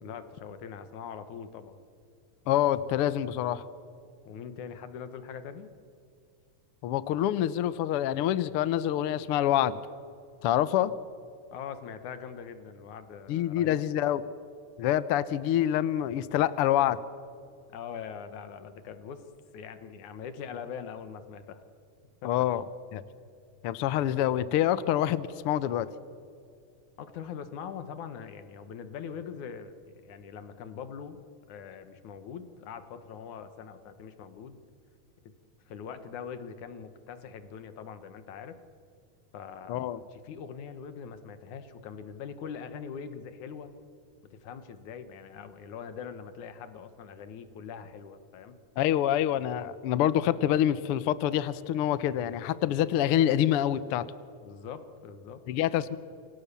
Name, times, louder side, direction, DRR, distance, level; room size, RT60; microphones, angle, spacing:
voice 1, 0.0-1.8 4.3-5.7 11.5-13.8 17.7-19.3 19.5-21.6 22.2-22.3 27.0-31.2 31.5-34.6 35.7-38.6 39.3-43.7 44.3-48.6 54.4-55.4, left 7 dB, 85° left, 10 dB, 2.9 m, -42 dB
voice 2, 2.5-3.6 6.8-9.8 10.4-10.9 13.3-14.2 14.8-17.0 22.2-22.6 22.9-23.0 23.6-25.9 39.7-40.0 48.8-54.1 55.5-56.0, left 11 dB, 65° left, 15 dB, 1.5 m, -26 dB
28.5 x 24.5 x 7.0 m, 2.4 s
omnidirectional pair, 3.3 m